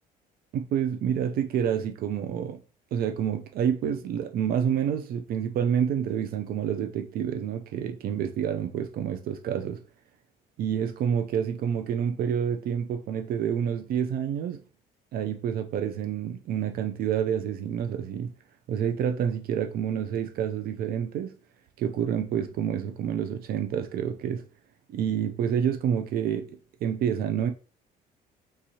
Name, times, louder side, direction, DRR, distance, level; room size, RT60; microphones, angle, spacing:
voice 1, 0.5-2.6 2.9-9.8 10.6-14.6 15.1-18.3 18.7-21.3 21.8-24.4 24.9-27.5, right 8 dB, 60° right, 0.4 m, -28 dB
3.6 x 2.9 x 2.7 m
cardioid pair, 110°, 17 cm